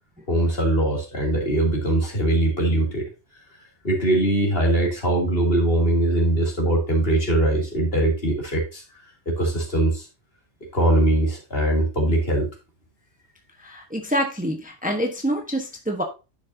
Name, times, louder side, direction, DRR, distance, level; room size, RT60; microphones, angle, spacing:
voice 1, 0.3-3.0 3.8-8.8 9.3-10.1 10.7-12.5, right 1 dB, 55° left, -1 dB, 3.1 m, -21 dB
voice 2, 13.6-16.0, equal, 10° right, 2 dB, 1.1 m, -26 dB
10.5 x 6.4 x 2.8 m, 0.29 s
omnidirectional pair, 1.2 m